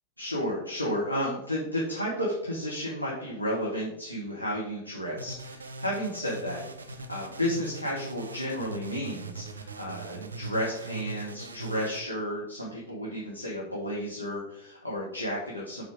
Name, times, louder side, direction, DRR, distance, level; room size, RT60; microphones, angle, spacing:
voice 1, 0.2-15.8, equal, 90° left, -5 dB, 1.4 m, -32 dB
sound 1, 5.2-12.0, right 3 dB, 70° right, 0.6 m, -40 dB
6.2 x 4.3 x 4.9 m, 0.81 s
figure-of-eight pair, 90°, 0 cm